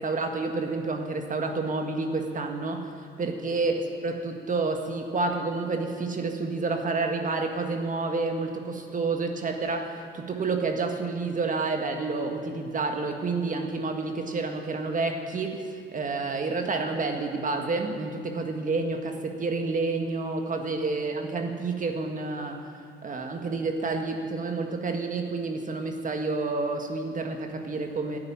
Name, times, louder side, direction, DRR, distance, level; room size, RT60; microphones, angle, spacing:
voice 1, 0.0-2.9 3.2-15.6 15.9-22.6 23.0-28.2, right 3 dB, 40° right, 4 dB, 1.8 m, -29 dB
12.5 x 9.7 x 9.8 m, 2.2 s
cardioid pair, 90°, 20 cm